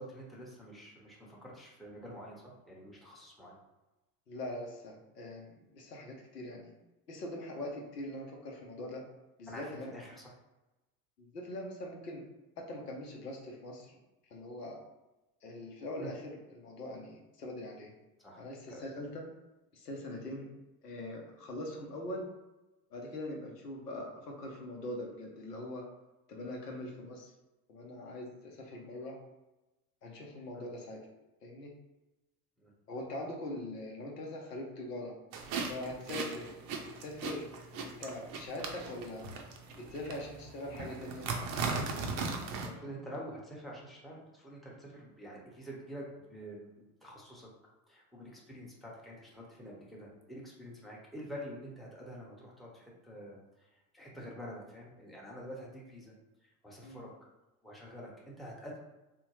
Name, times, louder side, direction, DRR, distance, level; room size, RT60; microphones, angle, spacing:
voice 1, 0.0-3.6 9.5-10.3 16.0-16.1 18.2-18.4 18.7-18.8 30.5-30.7 32.6-32.7 36.3-36.4 42.4-47.5 47.9-56.1 56.4-57.1 57.6-58.8, equal, ahead, -4 dB, 0.7 m, -47 dB
voice 2, 4.3-6.7 7.1-9.0 9.4-9.9 11.2-12.2 12.6-14.0 14.3-14.8 15.4-17.9 18.4-19.2 19.7-20.5 20.8-22.3 22.9-25.9 26.3-27.3 27.7-29.2 30.0-31.1 31.4-31.7 32.9-35.1 35.7-36.5 37.0-39.3 39.8-41.3 56.8-57.0, left 1 dB, 85° left, 0 dB, 0.8 m, -42 dB
sound 1, 35.3-42.7, right 4 dB, 50° right, 0.6 m, -38 dB
3.6 x 2.1 x 2.9 m, 1.0 s
figure-of-eight pair, 75°, 46 cm